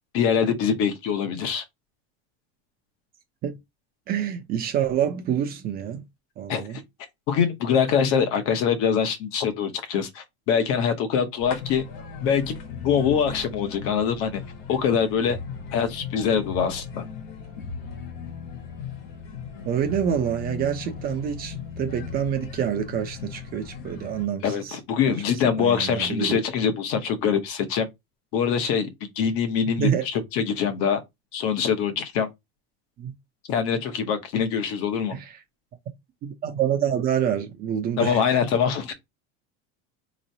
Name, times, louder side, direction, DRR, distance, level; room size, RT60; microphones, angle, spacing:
voice 1, 0.1-1.6 6.5-6.6 7.3-11.8 12.2-12.4 12.8-14.4 14.7-15.4 15.7-17.0 24.4-27.9 28.3-28.9 29.2-31.0 31.3-32.3 33.5-35.2 38.0-38.9, left 7 dB, 45° left, 1.0 m, -24 dB
voice 2, 4.1-6.0 6.4-6.8 19.6-24.8 25.6-26.4 29.8-30.0 33.0-33.1 35.1-35.4 36.2-38.4, right 9 dB, 30° right, 0.7 m, -27 dB
sound 1, 11.4-24.3, left 6 dB, 70° left, 1.4 m, -37 dB
4.2 x 3.1 x 2.7 m
cardioid pair, 170°, 30 cm